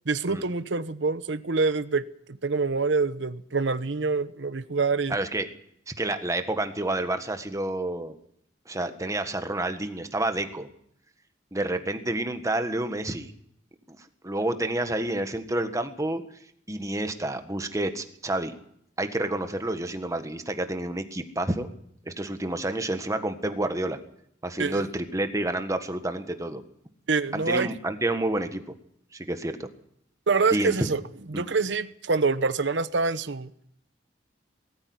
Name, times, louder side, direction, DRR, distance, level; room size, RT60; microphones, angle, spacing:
voice 1, 0.1-2.1 2.4-5.2 24.6-24.9 27.1-27.7 30.3-31.0 31.3-33.5, right 4 dB, 70° right, 13 dB, 0.9 m, -26 dB
voice 2, 5.1-5.5 5.9-8.1 8.7-10.7 11.5-13.3 13.9-14.0 14.2-16.2 16.7-18.5 19.0-21.7 22.0-24.0 24.4-26.6 27.3-28.6 29.1-29.7 30.5-30.9 31.3-31.4, right 1 dB, 15° right, 8 dB, 1.5 m, -29 dB
20.0 x 14.0 x 9.6 m, 0.70 s
head